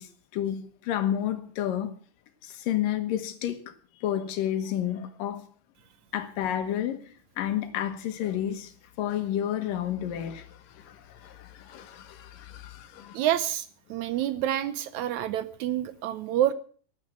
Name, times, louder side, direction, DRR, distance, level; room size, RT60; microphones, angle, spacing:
voice 1, 0.0-1.9 2.4-5.4 6.1-13.2, left 11 dB, 85° left, 3.0 m, -31 dB
voice 2, 13.1-16.5, right 12 dB, 75° right, 1.9 m, -28 dB
13.0 x 11.0 x 7.5 m
omnidirectional pair, 3.8 m